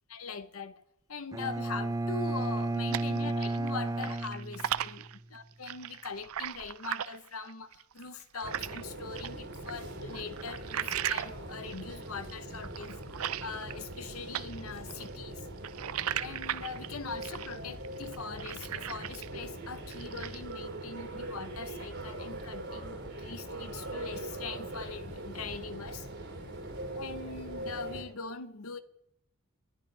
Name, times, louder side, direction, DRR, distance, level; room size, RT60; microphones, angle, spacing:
voice 1, 0.1-0.8 1.1-15.5 16.2-26.1 26.9-28.8, left 5 dB, 75° left, 1.1 m, -42 dB
Bowed string instrument, 1.3-5.2, right 2 dB, 15° right, 0.4 m, -33 dB
sound 1, 2.4-3.7 4.0-8.8 9.2-14.1 14.3-19.4 19.8-20.5, right 10 dB, 80° right, 0.5 m, -38 dB
sound 2, 8.4-28.0, right 1 dB, 60° right, 6.6 m, -42 dB
29.5 x 11.5 x 3.4 m
head